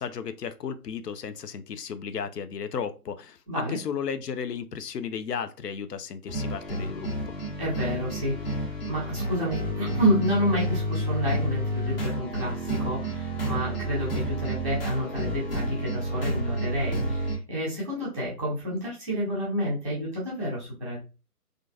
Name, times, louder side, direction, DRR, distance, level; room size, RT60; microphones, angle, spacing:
voice 1, 0.0-7.3, left 7 dB, 85° left, 11 dB, 0.5 m, -34 dB
voice 2, 3.5-3.8 7.6-21.0, equal, 5° left, -7 dB, 1.1 m, -29 dB
sound 1, 6.3-17.4, right 1 dB, 35° left, 1.0 m, -30 dB
3.7 x 2.5 x 2.2 m, 0.31 s
figure-of-eight pair, 145°, 47 cm